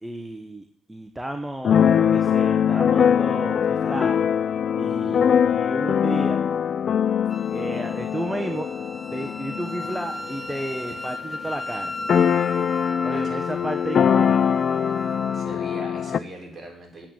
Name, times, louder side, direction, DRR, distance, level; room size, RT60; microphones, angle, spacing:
voice 1, 0.0-4.2 4.8-6.4 7.5-8.7 9.1-11.9 13.0-14.5, right 1 dB, 10° right, 5 dB, 1.1 m, -32 dB
Keyboard (musical), 1.6-11.2 11.5-11.6 11.8-16.2, left 8 dB, 55° left, 0.4 m, -22 dB
voice 2, 4.9-5.3 13.1-13.4 15.0-17.1, right 1 dB, 25° right, -1 dB, 5.6 m, -41 dB
Wind instrument woodwind instrument, 7.3-15.5, left 1 dB, 20° left, 1.0 m, -36 dB
8.8 x 7.8 x 8.6 m, 0.64 s
cardioid pair, 90°, 0 cm